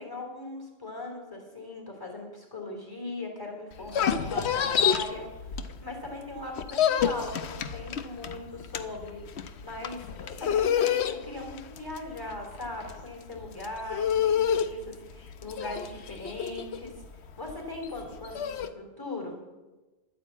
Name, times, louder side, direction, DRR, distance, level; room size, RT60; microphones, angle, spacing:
voice 1, 0.0-19.4, left 2 dB, 20° left, 1 dB, 3.3 m, -39 dB
sound 1, 3.7-6.1 6.4-18.7, left 8 dB, 85° left, 1.1 m, -28 dB
11.5 x 9.2 x 8.4 m, 1.1 s
omnidirectional pair, 1.1 m